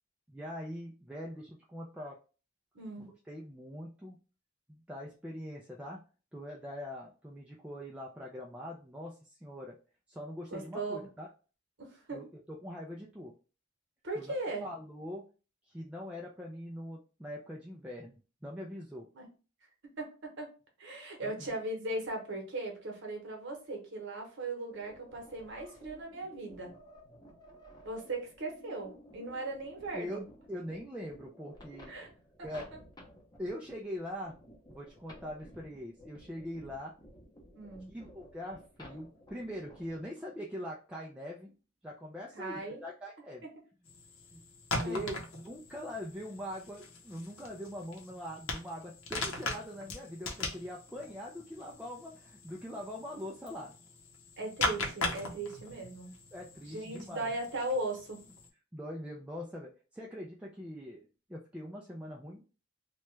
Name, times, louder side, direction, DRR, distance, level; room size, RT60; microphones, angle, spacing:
voice 1, 0.3-2.2 3.3-4.2 4.7-6.0 6.3-9.7 10.1-11.3 12.1-13.3 14.2-15.2 15.7-19.1 21.2-21.5 29.9-31.9 32.4-32.6 33.4-34.4 34.7-36.9 37.9-41.5 41.8-43.4 44.3-44.4 44.8-53.8 56.3-57.4 58.7-61.0 61.3-62.4, equal, 5° right, -3 dB, 0.3 m, -42 dB
voice 2, 2.7-3.1 10.5-11.1 11.8-12.2 14.0-14.7 19.1-19.3 20.0-20.5 20.8-26.7 27.8-30.2 31.9-32.1 37.5-37.9 42.3-42.8 44.8-45.1 54.4-56.1 56.7-58.2, right 2 dB, 60° right, 2 dB, 0.9 m, -38 dB
sound 1, 24.7-40.1, equal, 20° left, 0.7 m, -55 dB
sound 2, 43.9-58.5, left 2 dB, 75° left, 0.7 m, -40 dB
3.0 x 2.2 x 3.1 m, 0.35 s
head